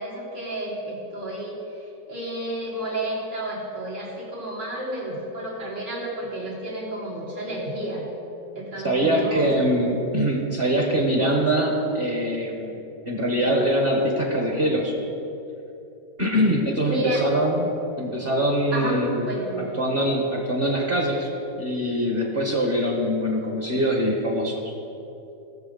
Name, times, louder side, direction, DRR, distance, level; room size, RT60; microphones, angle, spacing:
voice 1, 0.0-1.6 2.1-8.1 8.5-9.7 16.8-17.3 18.7-19.0 19.3-19.7, right 1 dB, 70° right, -7 dB, 4.0 m, -31 dB
voice 2, 8.8-12.8 13.0-14.9 16.2-19.3 19.6-21.3 21.6-24.7, equal, 35° right, 0 dB, 1.4 m, -23 dB
20.0 x 6.8 x 4.0 m, 2.9 s
omnidirectional pair, 1.9 m